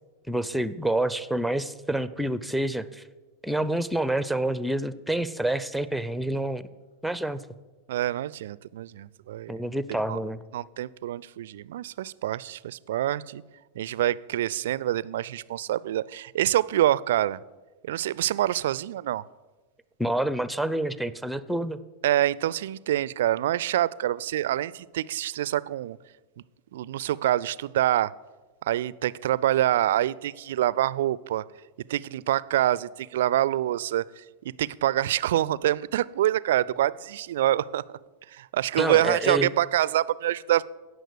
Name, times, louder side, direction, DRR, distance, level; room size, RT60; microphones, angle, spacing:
voice 1, 0.3-3.0 3.4-6.7 7.0-7.4 9.5-10.4 20.0-21.8 38.8-39.5, right 1 dB, ahead, 0.5 m, -28 dB
voice 2, 7.9-9.6 10.1-10.2 10.5-13.4 13.8-17.4 17.8-19.2 22.0-26.0 26.7-28.1 28.6-31.4 31.9-37.8 38.3-40.7, right 13 dB, 55° right, 0.3 m, -26 dB
16.5 x 6.3 x 6.6 m
figure-of-eight pair, 90°, 0 cm